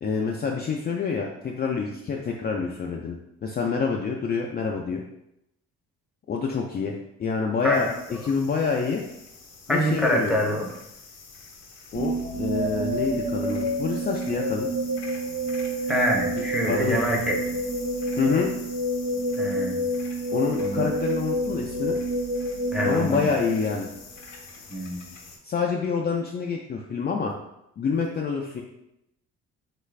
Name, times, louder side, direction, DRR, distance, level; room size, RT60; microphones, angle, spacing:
voice 1, 0.0-5.0 6.3-9.0 9.7-10.4 11.9-14.7 16.7-17.2 18.2-18.5 20.3-22.0 22.8-23.9 25.4-27.3 27.8-28.6, left 5 dB, 35° left, 0 dB, 0.4 m, -27 dB
sound 1, 7.7-25.4, left 4 dB, 65° left, 0.7 m, -45 dB
voice 2, 9.7-10.7 15.9-17.4 19.4-19.8 20.6-20.9 22.7-23.4 24.7-25.0, equal, 5° right, -2 dB, 0.6 m, -25 dB
sound 2, 11.9-24.0, right 1 dB, 75° right, 0.9 m, -28 dB
3.2 x 2.4 x 3.2 m, 0.83 s
cardioid pair, 90°, 30 cm